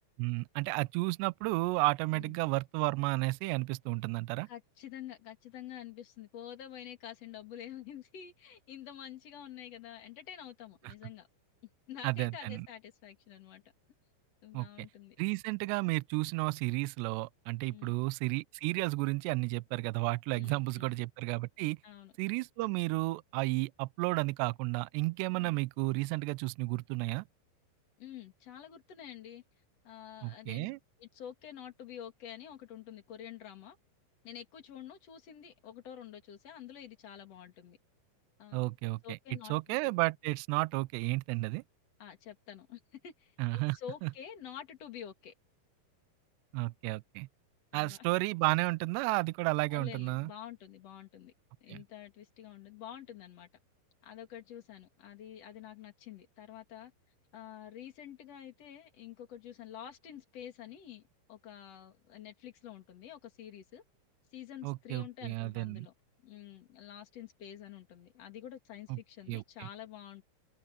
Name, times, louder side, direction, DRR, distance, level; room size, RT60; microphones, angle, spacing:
voice 1, 0.2-4.5 10.8-10.9 12.0-12.7 14.5-14.7 15.2-21.8 22.2-27.3 30.2-30.8 38.5-39.2 39.5-41.6 43.4-44.1 46.5-47.3 47.7-50.3 51.7-51.8 64.6-65.9 68.9-69.0 69.3-69.7, right 23 dB, 85° right, 2.5 m, -32 dB
voice 2, 4.5-11.3 11.9-13.6 14.4-15.2 17.7-18.1 20.3-21.0 21.8-22.1 25.4-25.6 28.0-29.4 29.8-30.7 31.0-33.8 34.2-37.8 38.4-38.6 39.0-39.5 39.8-39.9 42.0-45.3 47.7-48.0 49.7-51.3 51.6-53.5 54.0-56.9 57.3-61.0 61.3-63.8 64.3-65.9 66.2-70.2, left 10 dB, 45° left, 2.5 m, -48 dB
omnidirectional pair, 5.5 m